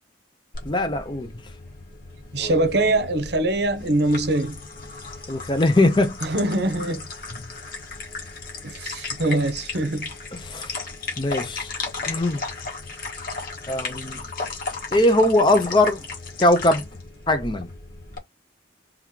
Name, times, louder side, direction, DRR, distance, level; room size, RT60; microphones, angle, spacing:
sound 1, 0.5-18.2, left 4 dB, 45° left, 1.4 m, -35 dB
voice 1, 0.6-1.4 5.3-6.2 7.3-7.4 10.3-10.9 11.2-11.7 12.1-12.4 13.7-14.2 14.9-16.1 16.4-16.8 17.3-17.7, left 1 dB, 25° left, 0.6 m, -21 dB
voice 2, 2.3-4.6 6.2-7.1 8.6-10.1, right 2 dB, 55° right, 0.7 m, -23 dB
3.5 x 2.9 x 3.7 m
head